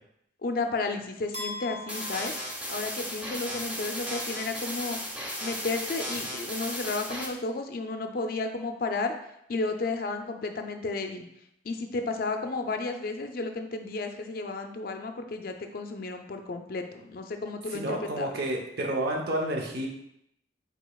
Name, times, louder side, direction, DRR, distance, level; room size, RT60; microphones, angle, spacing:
voice 1, 0.4-2.4 2.7-5.0 5.4-9.1 9.5-11.2 11.6-18.3, left 3 dB, 50° left, 5 dB, 0.4 m, -32 dB
sound 1, 1.3-3.5, left 2 dB, 35° right, 1.1 m, -41 dB
sound 2, 1.9-7.3, equal, 10° right, 0.6 m, -35 dB
voice 2, 17.7-19.9, right 1 dB, 55° right, 0 dB, 0.8 m, -30 dB
5.1 x 4.2 x 2.3 m, 0.78 s
head